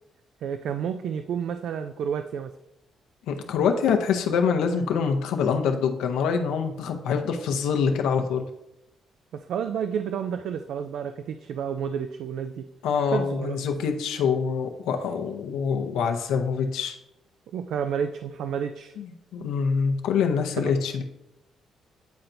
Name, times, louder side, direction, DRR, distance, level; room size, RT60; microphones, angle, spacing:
voice 1, 0.4-2.5 9.3-12.7 13.1-13.6 17.5-19.0 20.6-20.8, right 7 dB, 75° right, 9 dB, 0.3 m, -30 dB
voice 2, 3.3-8.4 12.8-17.0 19.0-21.0, left 6 dB, 90° left, 4 dB, 0.7 m, -25 dB
9.3 x 4.3 x 2.6 m, 0.89 s
cardioid pair, 90°, 0 cm